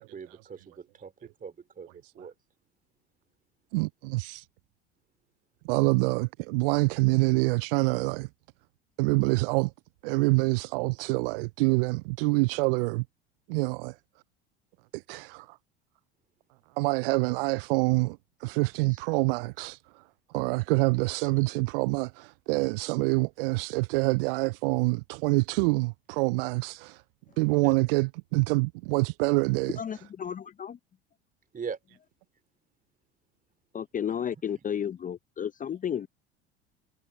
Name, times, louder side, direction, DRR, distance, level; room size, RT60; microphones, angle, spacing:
voice 1, 0.0-2.3 18.9-19.0 21.2-21.5 27.6-27.8 31.5-31.8, right 6 dB, 25° right, 4.2 m, -41 dB
voice 2, 3.7-4.5 5.6-8.3 9.0-9.7 10.0-13.0 13.5-14.0 14.9-15.6 16.8-20.0 20.3-27.0 27.4-29.8, right 26 dB, 60° right, 0.5 m, -26 dB
voice 3, 29.8-30.8 33.7-36.1, left 8 dB, 25° left, 0.8 m, -33 dB
hypercardioid pair, 75°, 32 cm